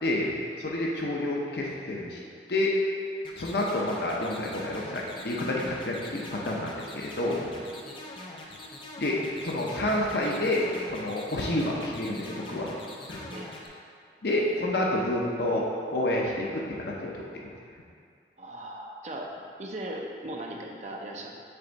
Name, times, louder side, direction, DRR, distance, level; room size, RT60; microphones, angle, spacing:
voice 1, 0.0-2.2 2.5-2.7 3.4-7.5 9.0-12.7 13.1-13.2 14.2-15.6 15.9-17.5, left 1 dB, 65° left, -2 dB, 0.7 m, -29 dB
sound 1, 3.2-13.7, left 1 dB, 30° left, 0.6 m, -43 dB
voice 2, 18.4-19.3 19.6-21.4, right 1 dB, 40° right, 0 dB, 0.6 m, -38 dB
6.8 x 3.5 x 4.0 m, 2.3 s
head